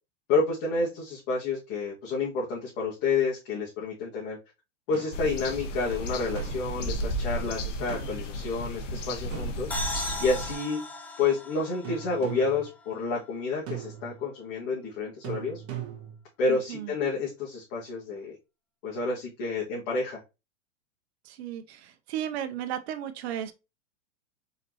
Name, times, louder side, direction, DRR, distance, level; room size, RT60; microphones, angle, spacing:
voice 1, 0.3-4.4 4.9-9.7 10.2-10.8 11.2-15.6 16.4-18.4 18.8-20.2, left 3 dB, 45° left, 2.0 m, -29 dB
sound 1, 4.9-5.3 6.3-6.9 7.9-8.3 9.3-10.2 11.8-12.7 13.7-14.2 15.2-16.2, right 9 dB, 40° right, 1.4 m, -40 dB
sound 2, 5.1-10.5, equal, 75° left, 1.2 m, -33 dB
sound 3, 9.7-13.3, left 1 dB, 5° left, 0.4 m, -37 dB
voice 2, 16.4-16.9 21.2-23.5, right 10 dB, 60° right, 0.8 m, -35 dB
4.3 x 4.1 x 2.9 m
hypercardioid pair, 125°, 37 cm